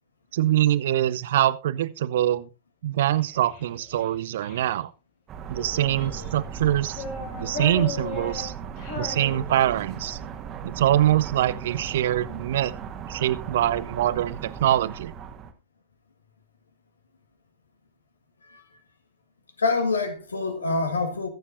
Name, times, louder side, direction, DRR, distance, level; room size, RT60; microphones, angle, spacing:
voice 1, 0.3-2.5 2.8-4.9 5.5-7.0 7.4-8.5 9.0-10.2 10.6-12.7 13.1-15.1, right 12 dB, 60° right, 0.6 m, -24 dB
Child speech kid speaking, 3.1-4.8 5.5-6.4 6.9-10.0, left 4 dB, 55° left, 4.9 m, -37 dB
sound 1, 5.3-15.5, right 6 dB, 30° right, 1.5 m, -37 dB
voice 2, 19.6-21.3, left 3 dB, 75° left, 1.6 m, -26 dB
22.0 x 7.3 x 2.6 m
figure-of-eight pair, 90°, 0 cm